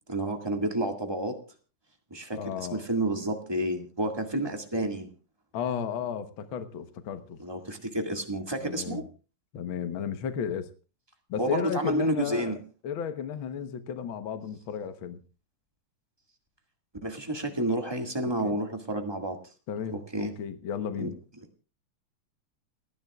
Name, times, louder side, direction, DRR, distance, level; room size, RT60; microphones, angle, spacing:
voice 1, 0.1-1.4 2.1-5.1 7.4-9.0 11.4-12.6 17.0-19.4 19.9-20.4 21.0-21.1, right 1 dB, 15° right, 3 dB, 0.8 m, -30 dB
voice 2, 2.3-2.9 5.5-7.4 8.6-9.0 9.5-10.7 11.3-12.6 12.8-15.2 18.4-18.6 19.7-21.2, left 8 dB, 85° left, 10 dB, 1.1 m, -33 dB
30.0 x 11.0 x 2.4 m, 0.34 s
omnidirectional pair, 4.0 m